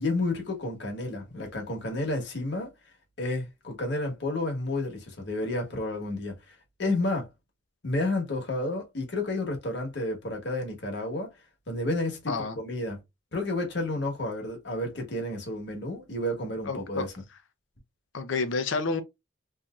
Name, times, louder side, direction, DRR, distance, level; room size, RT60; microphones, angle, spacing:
voice 1, 0.0-2.7 3.2-6.3 6.8-7.3 7.8-11.3 11.7-13.0 13.3-17.1, left 2 dB, 60° left, 1.3 m, -31 dB
voice 2, 12.3-12.6 16.6-17.0 18.1-19.0, left 4 dB, 75° left, 0.6 m, -29 dB
3.2 x 2.7 x 2.3 m
head